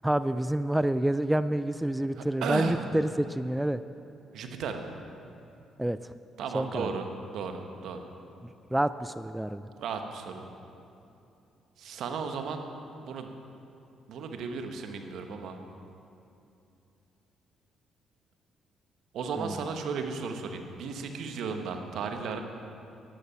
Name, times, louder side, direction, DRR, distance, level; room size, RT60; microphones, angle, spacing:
voice 1, 0.0-3.8 5.8-6.1 6.5-6.9 8.7-9.7 19.4-19.6, right 1 dB, 10° right, 13 dB, 0.3 m, -28 dB
voice 2, 2.2-2.8 4.3-4.9 6.4-8.0 9.8-10.5 11.8-12.6 13.0-13.3 14.1-15.6 19.1-22.4, right 5 dB, 70° right, 5 dB, 1.1 m, -35 dB
12.0 x 10.5 x 5.7 m, 2.7 s
hypercardioid pair, 55°, 0 cm